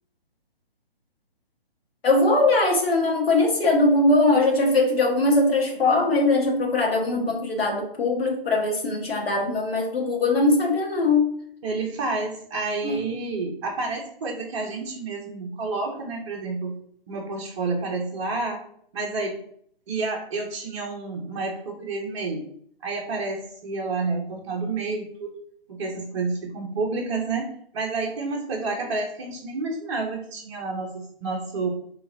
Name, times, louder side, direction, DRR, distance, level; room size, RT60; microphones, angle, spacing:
voice 1, 2.0-11.3 12.8-13.1, left 2 dB, 75° left, 0 dB, 1.2 m, -21 dB
voice 2, 11.6-16.8 17.1-18.6 18.9-19.4 19.9-22.4 22.8-25.3 25.7-31.7, right 3 dB, 30° right, 0 dB, 0.7 m, -29 dB
4.8 x 3.2 x 2.5 m, 0.64 s
figure-of-eight pair, 140°, 30 cm